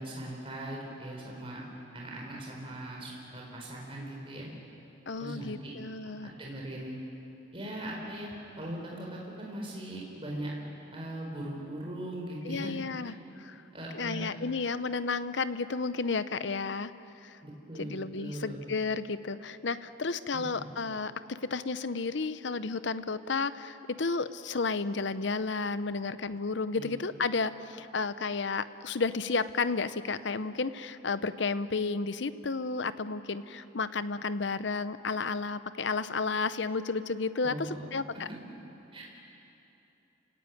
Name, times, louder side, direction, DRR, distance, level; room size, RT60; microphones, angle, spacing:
voice 1, 0.0-1.6 1.9-4.5 5.2-5.7 6.2-6.9 7.5-10.5 10.9-12.7 13.0-13.1 13.7-14.3 17.4-18.6 20.3-20.7 26.7-26.9 37.4-37.9 38.1-38.4 38.9-39.0, right 1 dB, 30° right, -2 dB, 4.2 m, -40 dB
voice 2, 5.1-6.3 12.4-13.6 13.9-16.9 17.2-17.4 17.8-38.3, left 4 dB, 65° left, 14 dB, 0.8 m, -32 dB
28.5 x 17.0 x 9.3 m, 3.0 s
head